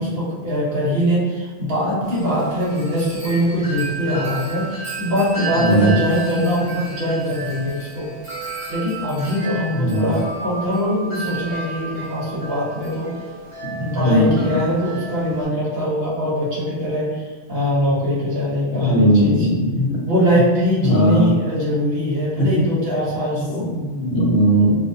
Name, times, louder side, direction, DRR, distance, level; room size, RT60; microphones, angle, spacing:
voice 1, 0.0-8.1 8.7-13.1 13.8-19.5 20.0-23.7, equal, 60° right, -7 dB, 1.0 m, -22 dB
Wind chime, 2.0-15.4, right 4 dB, 40° right, 0.5 m, -32 dB
voice 2, 5.6-5.9 9.8-10.2 13.6-13.7 14.0-14.5 18.8-20.0 20.8-21.3 23.7-24.8, equal, 70° left, -3 dB, 0.8 m, -18 dB
2.4 x 2.2 x 2.6 m, 1.4 s
omnidirectional pair, 1.2 m